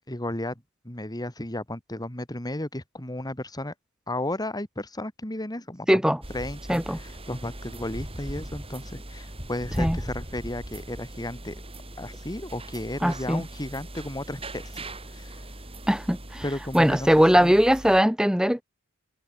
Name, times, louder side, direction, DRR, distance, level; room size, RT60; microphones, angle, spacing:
voice 1, 0.1-3.7 4.1-5.9 6.3-11.6 12.0-15.4 16.4-17.5, left 1 dB, 20° left, 2.7 m, -34 dB
voice 2, 5.9-6.2 6.7-7.0 9.8-10.0 13.0-13.4 15.9-16.4 16.7-18.6, equal, 5° right, 1.4 m, -20 dB
sound 1, 6.2-18.0, right 1 dB, 25° right, 6.5 m, -39 dB
head